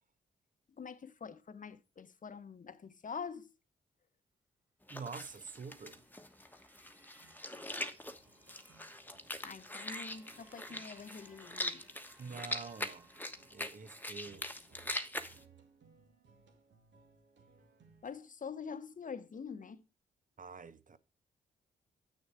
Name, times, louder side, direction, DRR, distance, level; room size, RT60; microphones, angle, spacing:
voice 1, 0.8-3.5 9.4-11.9 18.0-19.8, left 6 dB, 40° left, 0.9 m, -45 dB
sound 1, 4.9-15.4, left 1 dB, 10° left, 1.2 m, -43 dB
voice 2, 4.9-6.0 12.2-14.5 20.4-21.0, right 5 dB, 40° right, 0.9 m, -47 dB
sound 2, 5.8-14.0, right 2 dB, 10° right, 2.6 m, -65 dB
sound 3, 7.2-18.1, right 5 dB, 65° right, 1.9 m, -66 dB
8.4 x 6.5 x 4.7 m
hypercardioid pair, 40°, 20 cm